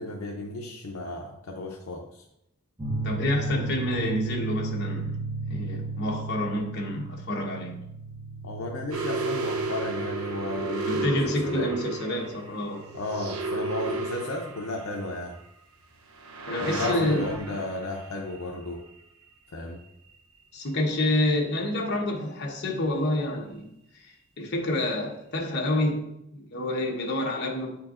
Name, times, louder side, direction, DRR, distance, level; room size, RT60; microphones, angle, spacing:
voice 1, 0.0-2.2 8.4-11.7 12.9-15.3 16.6-18.8 19.5-19.8, left 2 dB, 75° left, -1 dB, 0.7 m, -34 dB
sound 1, 2.8-14.0, right 3 dB, 20° right, 1.2 m, -36 dB
voice 2, 3.0-5.1 5.5-7.8 10.6-12.9 16.5-17.6 20.5-23.7 24.0-26.1 26.3-27.8, left 1 dB, 50° left, 0 dB, 1.1 m, -28 dB
sound 2, 8.9-15.2 16.2-18.9, right 3 dB, 90° right, 0.7 m, -33 dB
8.7 x 4.4 x 2.5 m, 0.81 s
head